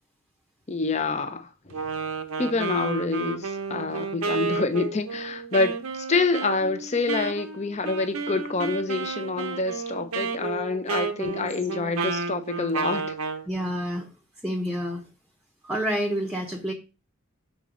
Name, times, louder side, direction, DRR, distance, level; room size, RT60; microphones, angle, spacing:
voice 1, 0.7-1.8 2.4-13.2, left 3 dB, 30° left, 0.7 m, -27 dB
Wind instrument woodwind instrument, 1.7-13.5, right 4 dB, 85° right, 0.8 m, -31 dB
voice 2, 13.5-14.1 14.4-15.0 15.6-16.7, equal, 5° right, 0.8 m, -28 dB
6.3 x 4.1 x 5.2 m
head